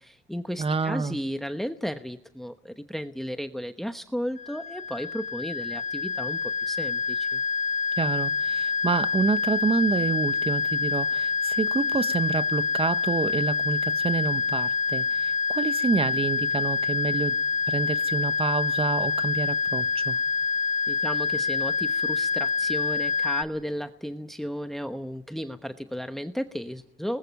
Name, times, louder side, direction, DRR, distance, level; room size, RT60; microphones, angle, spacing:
voice 1, 0.0-7.4 20.9-27.2, equal, ahead, 1.1 m, -34 dB
voice 2, 0.6-1.2 8.0-17.4 17.7-20.2, right 4 dB, 30° right, 1.1 m, -28 dB
sound 1, 4.4-23.4, left 5 dB, 40° left, 1.4 m, -26 dB
29.5 x 20.5 x 5.4 m
cardioid pair, 90°, 20 cm